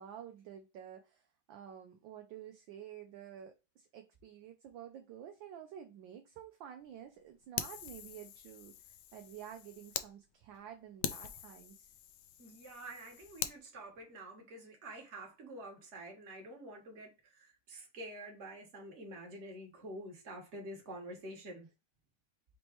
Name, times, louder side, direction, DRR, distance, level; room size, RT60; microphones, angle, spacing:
voice 1, 0.0-11.9, right 9 dB, 70° right, 1.2 m, -50 dB
Fire, 7.6-10.1 10.5-10.6 11.0-13.6, left 10 dB, 85° left, 0.9 m, -42 dB
voice 2, 12.4-21.7, right 1 dB, 35° right, 1.5 m, -48 dB
5.2 x 3.2 x 3.0 m
omnidirectional pair, 2.4 m